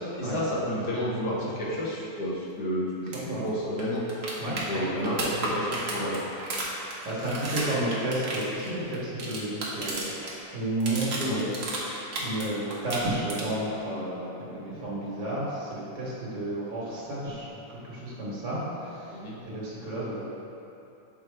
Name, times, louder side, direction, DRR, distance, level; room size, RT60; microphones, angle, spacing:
voice 1, 0.0-4.0 4.7-6.2 11.0-11.4 19.1-19.4, equal, 65° left, -6 dB, 1.6 m, -31 dB
sound 1, 3.1-3.2 3.5-3.6 3.8-10.3 10.6-12.4 12.7-13.7 15.7-15.8, right 2 dB, 45° right, 1.0 m, -33 dB
voice 2, 4.4-5.5 7.0-20.2, right 1 dB, 75° right, -7 dB, 2.1 m, -32 dB
7.0 x 4.7 x 3.4 m, 2.9 s
omnidirectional pair, 1.9 m